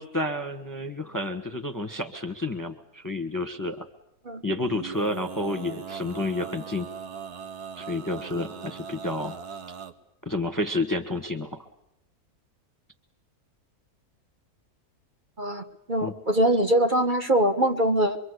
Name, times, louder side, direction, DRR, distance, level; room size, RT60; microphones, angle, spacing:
voice 1, 0.0-3.9 4.4-6.9 7.8-9.4 10.2-11.6 16.0-16.1, left 2 dB, 15° left, 8 dB, 1.2 m, -30 dB
Male singing, 4.6-9.9, right 7 dB, 80° right, 1.8 m, -39 dB
voice 2, 15.4-18.2, right 1 dB, 30° right, 5 dB, 1.4 m, -23 dB
24.5 x 24.0 x 8.2 m, 0.84 s
omnidirectional pair, 1.7 m